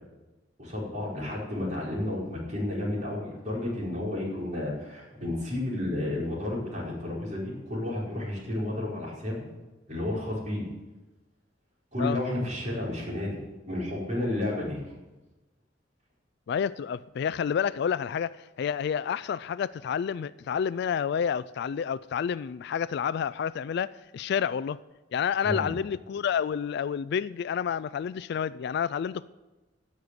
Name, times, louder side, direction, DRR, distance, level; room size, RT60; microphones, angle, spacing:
voice 1, 0.6-9.5 9.9-10.6 11.9-13.4 13.7-14.8 25.4-25.7, left 1 dB, 40° right, 4.8 m, -31 dB
voice 2, 16.5-24.8 25.1-29.3, left 7 dB, 60° left, 0.3 m, -29 dB
13.5 x 6.7 x 9.5 m
head